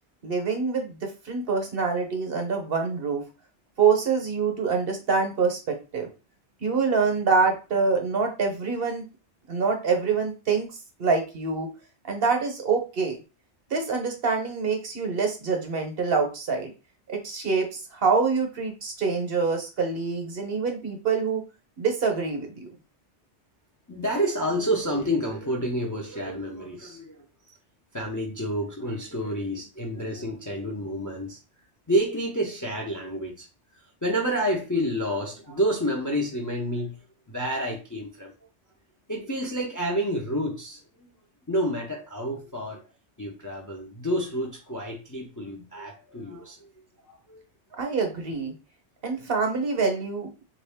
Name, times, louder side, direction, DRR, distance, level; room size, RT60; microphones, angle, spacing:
voice 1, 0.2-3.2 3.8-6.1 6.6-9.1 9.5-10.7 11.0-11.7 12.0-13.2 13.7-16.7 17.1-21.4 21.8-22.7 47.8-48.5 49.0-50.3, right 5 dB, 60° right, 4 dB, 1.0 m, -25 dB
voice 2, 23.9-27.3 27.9-31.4 31.9-33.5 34.0-37.0 37.3-38.3 39.1-41.1 41.5-42.8 43.2-46.7 47.0-47.4, equal, 20° left, 0 dB, 0.5 m, -29 dB
3.5 x 2.7 x 3.4 m, 0.31 s
omnidirectional pair, 1.2 m